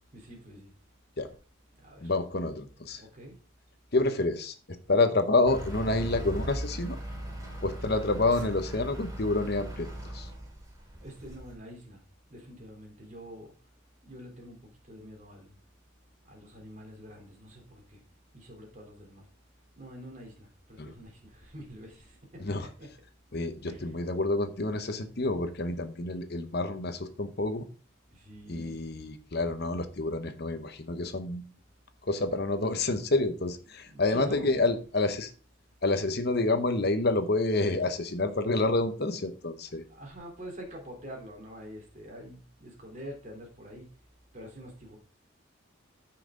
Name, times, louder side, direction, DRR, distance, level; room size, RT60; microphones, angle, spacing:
voice 1, 0.1-0.7 1.8-2.1 2.9-3.3 10.8-12.0 12.3-13.5 14.0-15.6 16.2-18.0 18.3-19.2 19.7-22.9 23.6-24.0 28.1-28.7 33.6-34.5 39.9-43.9 44.3-45.0, equal, 35° right, 3.4 m, -46 dB
voice 2, 2.0-3.0 3.9-7.0 7.6-9.9 10.1-10.3 20.8-20.9 22.4-22.7 23.3-27.6 28.5-31.5 32.0-35.3 35.8-39.8, left 2 dB, 50° left, 0.9 m, -28 dB
Truck / Idling, 5.4-11.5, equal, 15° right, 2.4 m, -38 dB
13.5 x 5.9 x 3.8 m
head